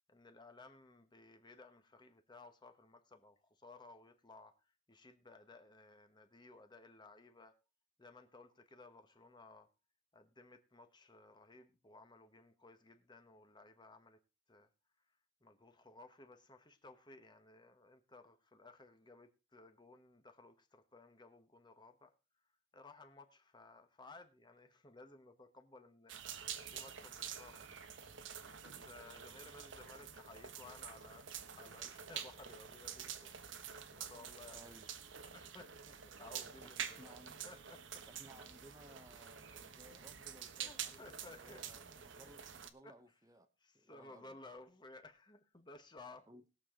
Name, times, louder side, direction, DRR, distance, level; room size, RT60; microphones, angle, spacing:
voice 1, 0.1-7.5 8.0-9.7 10.1-14.2 14.5-14.7 15.4-22.1 22.7-27.7 28.6-31.3 31.5-34.8 35.3-37.1 37.4-38.0 40.6-41.6 42.8-43.0 43.6-46.3, left 2 dB, 20° left, 1.2 m, -58 dB
sound 1, 26.1-42.7, right 8 dB, 65° right, 1.1 m, -48 dB
voice 2, 34.5-34.9 36.6-37.4 38.1-43.5 43.7-44.4 46.3-46.4, right 1 dB, 15° right, 0.9 m, -60 dB
20.0 x 7.0 x 3.7 m
head